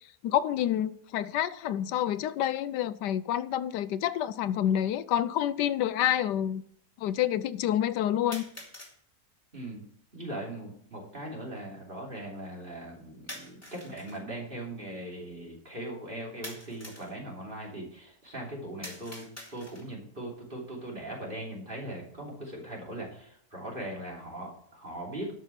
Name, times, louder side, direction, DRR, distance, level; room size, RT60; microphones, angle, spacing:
voice 1, 0.2-6.6 7.0-8.4, left 11 dB, 80° left, 1.2 m, -28 dB
sound 1, 4.0-4.1 5.0-5.1 8.3-9.0 13.3-14.2 16.4-17.1 18.8-20.0, left 1 dB, 10° left, 2.6 m, -45 dB
voice 2, 9.5-9.8 10.1-19.2 19.5-25.3, right 1 dB, 30° right, 3.2 m, -40 dB
12.0 x 6.2 x 5.8 m
omnidirectional pair, 1.8 m